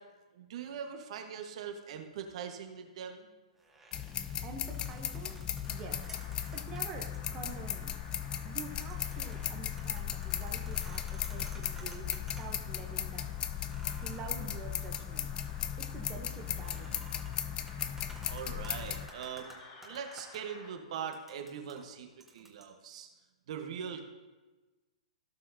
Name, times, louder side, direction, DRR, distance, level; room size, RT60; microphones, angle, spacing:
voice 1, 0.3-3.3 18.3-19.6 19.8-22.1 22.3-23.1 23.5-24.0, right 7 dB, 60° right, 4 dB, 1.4 m, -41 dB
sound 1, 3.6-6.8 7.1-7.2 7.7-8.1 8.4-12.9 13.2-13.3 13.7-20.4 21.1-22.6, right 3 dB, 5° right, 1.5 m, -55 dB
sound 2, 3.9-19.1, left 10 dB, 25° left, 0.5 m, -37 dB
voice 2, 4.4-8.0 8.4-15.3 15.8-17.0, right 6 dB, 25° right, 1 dB, 1.0 m, -47 dB
sound 3, 5.6-20.7, left 3 dB, 45° left, 2.2 m, -53 dB
16.0 x 5.7 x 2.8 m, 1.2 s
hypercardioid pair, 130°, 4 cm